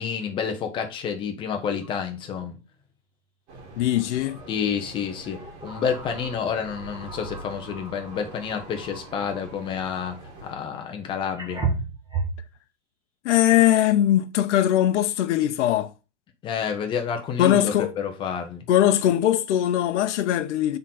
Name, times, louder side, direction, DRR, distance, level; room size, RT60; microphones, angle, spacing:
voice 1, 0.0-2.6 4.5-11.6 16.4-18.7, left 7 dB, 15° left, 0.6 m, -29 dB
sound 1, 1.8-1.9 2.3-2.4 4.3-4.5 5.3-9.6 10.8-10.9 11.4-12.5, right 4 dB, 10° right, 1.1 m, -34 dB
sound 2, 3.5-10.5, right 2 dB, 70° right, 1.9 m, -44 dB
voice 2, 3.8-4.4 13.2-15.9 17.4-17.9 18.7-20.8, left 12 dB, 75° left, 0.7 m, -20 dB
4.4 x 3.8 x 5.5 m
supercardioid pair, 165°, 35 cm